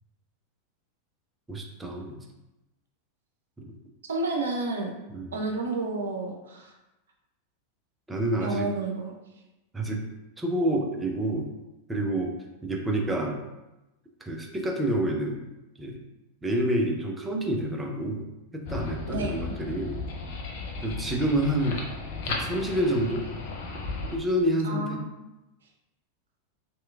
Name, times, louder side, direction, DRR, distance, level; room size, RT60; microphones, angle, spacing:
voice 1, 1.5-2.2 3.6-3.7 5.1-5.3 8.1-8.7 9.7-10.1 10.4-11.5 11.9-12.3 12.6-13.4 14.2-15.4 15.8-16.0 16.4-20.0 20.8-21.8 22.2-23.3 24.1-25.0, right 1 dB, 10° right, 1 dB, 0.5 m, -28 dB
voice 2, 4.0-4.9 5.3-6.7 8.4-9.1 19.1-19.4 24.6-25.1, right 2 dB, 65° right, 1 dB, 0.5 m, -30 dB
sound 1, 18.7-24.2, left 3 dB, 50° left, 0.5 m, -35 dB
3.1 x 2.9 x 2.4 m, 0.98 s
figure-of-eight pair, 90°, 0 cm